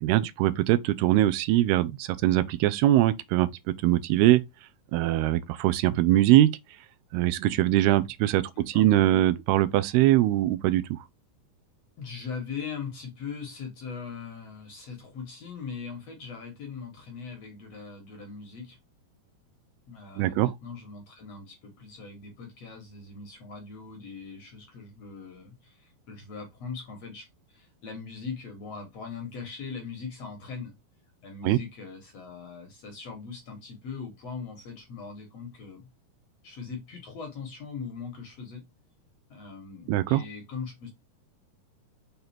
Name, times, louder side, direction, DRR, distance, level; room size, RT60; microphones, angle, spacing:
voice 1, 0.0-3.5 3.8-4.4 4.9-6.6 7.1-11.0 20.2-20.5 31.4-31.6 39.9-40.2, right 14 dB, 85° right, 2.6 m, -22 dB
voice 2, 8.5-8.9 12.0-18.8 19.9-30.7 31.2-35.9 36.4-38.6 39.3-40.9, left 5 dB, 55° left, 2.0 m, -40 dB
6.8 x 4.0 x 4.3 m
omnidirectional pair, 4.5 m